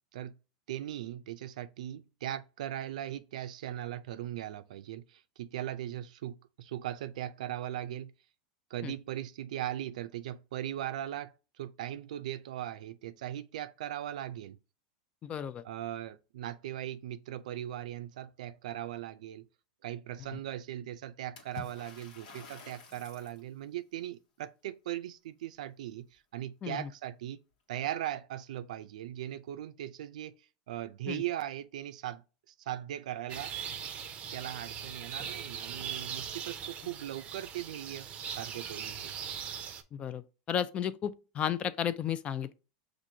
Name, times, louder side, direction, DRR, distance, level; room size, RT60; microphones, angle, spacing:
voice 1, 0.7-8.1 8.7-14.6 15.6-19.5 19.8-27.4 27.7-30.3 30.7-32.2 32.5-33.5 34.3-39.1, right 12 dB, 85° right, 0.4 m, -39 dB
voice 2, 15.2-15.6 26.6-26.9 31.1-31.2 39.9-40.2 40.5-42.5, left 9 dB, 30° left, 0.4 m, -33 dB
Water / Splash splatter, 21.4-23.4, left 5 dB, 90° left, 1.2 m, -48 dB
sound 1, 33.3-39.8, right 8 dB, 35° right, 0.5 m, -40 dB
6.0 x 2.5 x 2.7 m
supercardioid pair, 130°, 4 cm